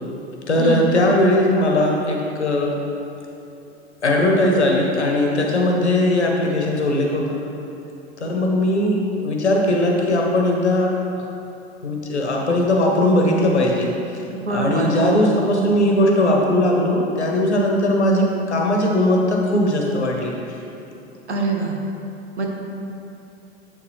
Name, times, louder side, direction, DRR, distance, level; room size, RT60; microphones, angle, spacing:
voice 1, 0.5-2.8 4.0-7.4 8.2-10.9 11.8-13.9 14.5-20.3, left 1 dB, 80° left, 0 dB, 1.3 m, -19 dB
voice 2, 14.2-15.3 21.3-21.8 22.4-22.5, right 3 dB, 80° right, 0 dB, 1.2 m, -23 dB
8.3 x 6.9 x 3.2 m, 2.8 s
figure-of-eight pair, 90°, 33 cm